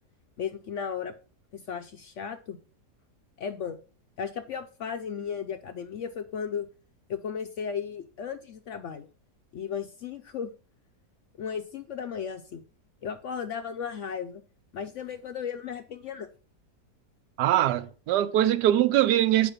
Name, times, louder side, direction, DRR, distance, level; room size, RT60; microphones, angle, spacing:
voice 1, 0.4-1.1 1.5-2.6 3.4-3.8 4.2-6.7 7.1-9.1 9.5-10.5 11.4-12.6 13.0-14.4 14.7-16.3, left 7 dB, 65° left, 0.7 m, -35 dB
voice 2, 17.4-19.5, right 12 dB, 85° right, 1.2 m, -22 dB
7.3 x 5.2 x 5.1 m
omnidirectional pair, 1.8 m